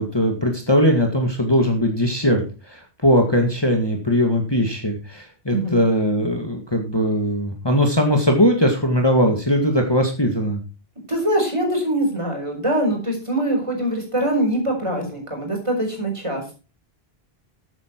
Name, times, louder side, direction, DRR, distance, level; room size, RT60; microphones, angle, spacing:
voice 1, 0.0-10.6, equal, 25° left, 2 dB, 1.9 m, -20 dB
voice 2, 5.5-5.8 11.1-16.5, right 1 dB, 30° right, 1 dB, 4.9 m, -23 dB
13.5 x 8.8 x 4.5 m, 0.33 s
omnidirectional pair, 1.0 m